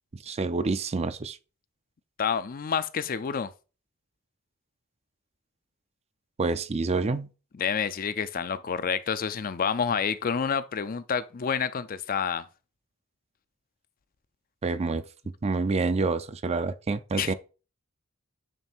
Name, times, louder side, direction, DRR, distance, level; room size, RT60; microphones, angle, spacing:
voice 1, 0.2-1.4 6.4-7.3 14.6-15.0 15.4-17.3, right 3 dB, 30° right, 0.5 m, -27 dB
voice 2, 2.2-3.5 7.6-12.4 17.2-17.3, left 6 dB, 40° left, 0.5 m, -28 dB
9.2 x 3.3 x 4.4 m
head